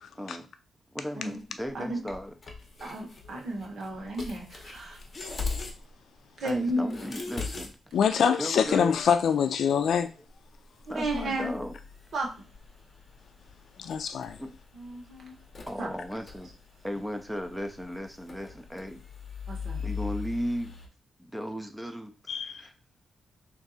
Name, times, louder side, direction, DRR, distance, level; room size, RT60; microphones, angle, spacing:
voice 1, 0.9-2.3 6.4-7.8 8.4-9.0 10.9-11.7 14.4-14.5 15.7-16.5 16.8-19.0 19.8-20.8 21.2-22.7, equal, 5° right, 0.5 m, -36 dB
sound 1, 1.4-1.7 2.1-5.9 6.2-6.3 6.5-7.7 8.0-8.1 8.6-9.7 10.0-10.1 10.3-20.9, left 4 dB, 35° left, 0.8 m, -41 dB
voice 2, 2.8-5.0 6.4-6.9 10.9-11.5 12.1-12.5 14.7-15.4 15.8-15.9 19.5-19.8, right 1 dB, 60° right, 1.2 m, -33 dB
voice 3, 7.9-10.1 13.8-14.4 22.3-22.6, left 7 dB, 70° left, 0.4 m, -25 dB
3.6 x 2.6 x 4.0 m
wide cardioid pair, 155°, 0 cm